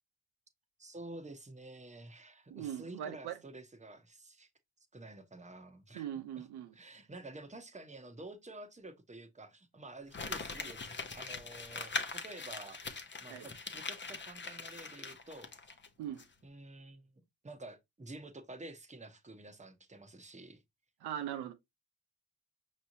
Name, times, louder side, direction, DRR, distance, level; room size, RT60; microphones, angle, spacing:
voice 1, 0.8-4.5 4.9-6.1 6.4-6.5 6.7-12.8 13.2-15.7 16.4-17.1 17.4-20.6, right 2 dB, 20° right, 1.1 m, -50 dB
voice 2, 2.5-3.4 5.9-6.7 13.3-13.5 16.0-16.2 21.0-21.5, right 10 dB, 85° right, 0.7 m, -40 dB
Crumpling crinkling, 10.1-15.9 16.2-16.3, left 4 dB, 30° left, 0.9 m, -41 dB
5.3 x 3.1 x 2.7 m
cardioid pair, 60°, 38 cm